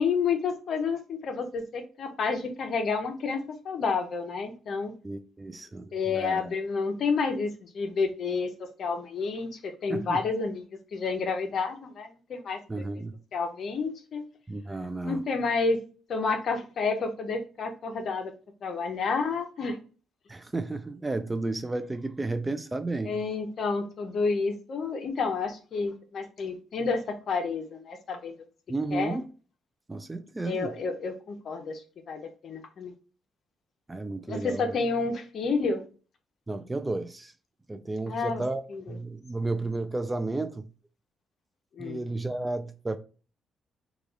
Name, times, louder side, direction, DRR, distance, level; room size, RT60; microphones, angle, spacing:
voice 1, 0.0-4.9 5.9-8.5 8.8-10.6 10.9-12.8 13.3-14.2 15.0-15.8 16.1-18.3 18.6-19.8 23.0-28.4 28.9-29.2 30.4-31.8 32.1-32.9 34.3-35.8 38.1-38.4 38.7-39.0 41.7-42.0, left 4 dB, 60° left, 0.7 m, -30 dB
voice 2, 5.0-6.5 9.9-10.2 12.7-13.2 14.5-15.2 20.3-23.2 28.7-29.2 29.9-30.7 33.9-34.8 36.5-37.3 37.7-38.6 38.9-40.7 41.8-43.0, right 2 dB, 15° right, 0.4 m, -32 dB
3.2 x 2.4 x 3.7 m
cardioid pair, 90°, 0 cm